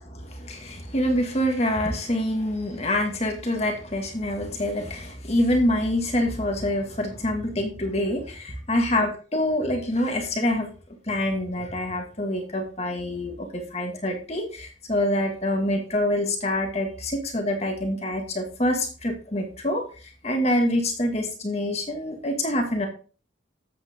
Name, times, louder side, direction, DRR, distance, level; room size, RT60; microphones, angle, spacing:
voice 1, 0.0-10.7 11.1-22.9, left 1 dB, 35° left, 3 dB, 2.1 m, -26 dB
13.0 x 8.8 x 3.7 m, 0.37 s
head